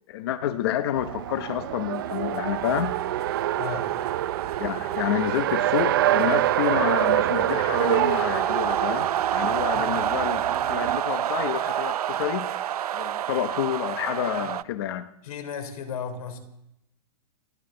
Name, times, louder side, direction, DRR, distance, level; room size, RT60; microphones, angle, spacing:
voice 1, 0.1-3.0 4.6-12.5 12.9-15.1, left 11 dB, 40° left, 11 dB, 0.8 m, -29 dB
Race car auto racing, 0.9-11.0, right 13 dB, 35° right, 0.4 m, -26 dB
sound 1, 1.9-14.6, right 11 dB, 80° right, 0.6 m, -30 dB
voice 2, 3.6-3.9 9.7-9.9 15.2-16.4, left 6 dB, 70° left, 6 dB, 3.5 m, -34 dB
28.0 x 11.0 x 3.9 m, 0.83 s
hypercardioid pair, 175°, 19 cm